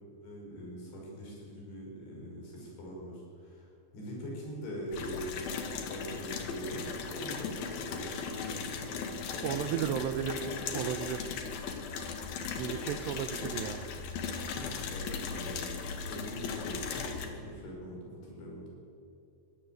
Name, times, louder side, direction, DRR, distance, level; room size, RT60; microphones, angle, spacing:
voice 1, 0.2-3.7 3.9-10.6 14.5-18.6, equal, 85° left, -3 dB, 7.9 m, -42 dB
sound 1, 4.9-17.3, left 5 dB, 65° left, 3.4 m, -38 dB
voice 2, 9.4-10.5 10.7-11.3 12.6-13.9, right 10 dB, 85° right, 9 dB, 2.9 m, -34 dB
23.5 x 17.0 x 7.9 m, 2.7 s
omnidirectional pair, 4.9 m